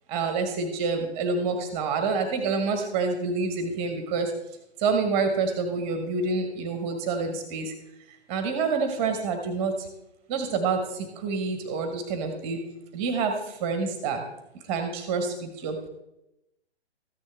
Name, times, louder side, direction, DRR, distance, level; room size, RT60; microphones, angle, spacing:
voice 1, 0.1-4.3 4.8-7.7 8.3-9.7 10.3-12.6 12.9-13.3 13.6-14.2 14.7-15.9, right 4 dB, 20° right, 6 dB, 1.1 m, -27 dB
14.0 x 9.5 x 3.4 m, 0.88 s
figure-of-eight pair, 135°, 34 cm